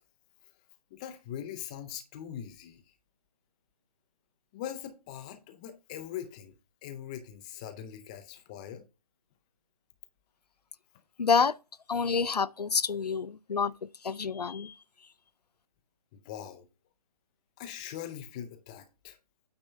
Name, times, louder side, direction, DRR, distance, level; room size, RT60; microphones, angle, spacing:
voice 1, 0.9-2.8 4.5-6.5 6.8-8.8 16.1-16.7 17.6-19.2, left 10 dB, 10° left, 0.4 m, -41 dB
voice 2, 11.2-11.6 11.9-13.7 14.0-14.7, left 5 dB, 80° left, 0.5 m, -27 dB
8.9 x 3.5 x 5.2 m
figure-of-eight pair, 145°, 20 cm